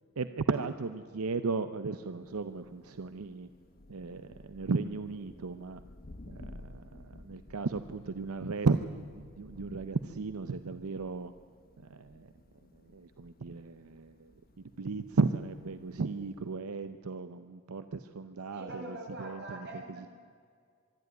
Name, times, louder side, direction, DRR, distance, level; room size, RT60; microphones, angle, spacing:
voice 1, 0.2-3.5 3.9-5.8 6.3-11.3 11.9-12.3 12.9-14.3 14.8-19.6 20.0-20.1, right 4 dB, 85° right, 10 dB, 0.7 m, -35 dB
Thunder, 2.0-16.6, left 1 dB, 45° left, 1.1 m, -54 dB
voice 2, 18.5-20.1, right 1 dB, 50° right, 0 dB, 5.2 m, -43 dB
24.5 x 12.0 x 9.4 m, 2.1 s
head